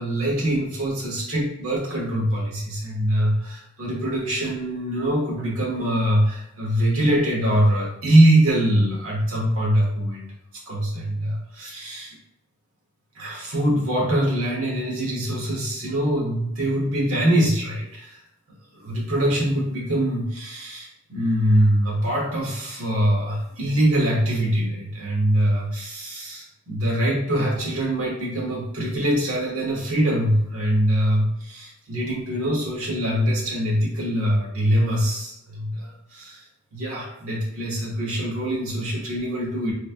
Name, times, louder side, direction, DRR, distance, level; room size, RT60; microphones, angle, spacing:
voice 1, 0.0-10.3 10.7-12.2 13.1-18.2 18.7-36.4 36.7-39.7, right 1 dB, 80° right, -3 dB, 1.0 m, -23 dB
3.3 x 3.1 x 2.4 m, 0.78 s
head